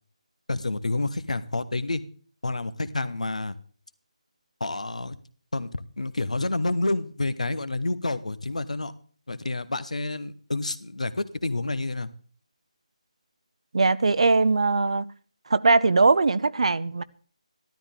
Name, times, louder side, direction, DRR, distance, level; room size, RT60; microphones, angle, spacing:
voice 1, 0.5-2.0 2.4-3.6 4.6-5.2 5.5-5.7 6.0-8.9 9.3-12.1, left 2 dB, 75° left, 1.3 m, -29 dB
voice 2, 13.7-15.1 15.5-17.0, right 3 dB, 60° right, 0.7 m, -20 dB
14.5 x 12.5 x 3.7 m
figure-of-eight pair, 155°, 4 cm